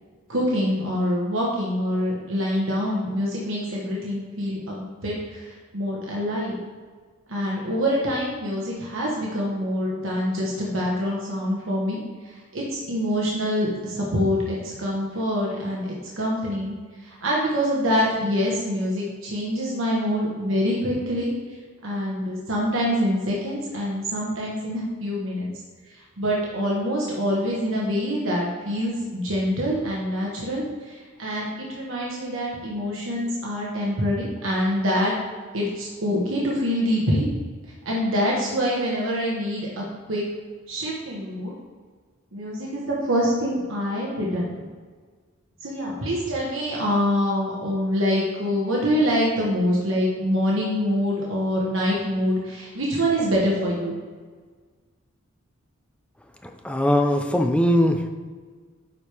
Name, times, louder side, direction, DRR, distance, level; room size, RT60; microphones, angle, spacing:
voice 1, 0.3-6.6 7.3-12.0 12.2-16.7 17.0-21.3 21.8-25.5 26.2-35.1 35.5-37.3 37.8-40.2 40.7-41.5 42.3-44.5 45.6-54.0, equal, 65° right, -4 dB, 1.3 m, -25 dB
voice 2, 56.6-58.1, left 1 dB, 5° left, 4 dB, 0.5 m, -20 dB
9.6 x 4.6 x 3.4 m, 1.5 s
head